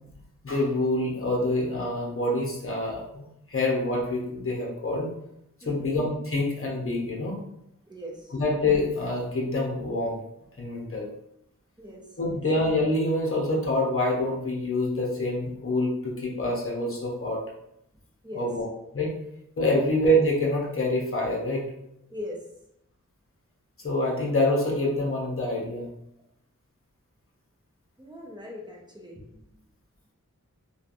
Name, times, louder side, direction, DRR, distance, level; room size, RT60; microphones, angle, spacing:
voice 1, 0.4-3.2 3.5-5.1 5.6-7.4 8.3-10.2 10.6-11.1 12.2-17.4 18.3-19.1 19.6-21.7 23.8-25.9, left 1 dB, 45° left, -2 dB, 0.8 m, -26 dB
voice 2, 5.6-6.0 7.9-8.3 11.8-12.4 18.2-18.5 19.8-19.9 22.1-22.4 28.0-29.4, left 1 dB, 15° right, -2 dB, 0.8 m, -40 dB
3.1 x 2.3 x 2.5 m, 0.78 s
wide cardioid pair, 45°, 32 cm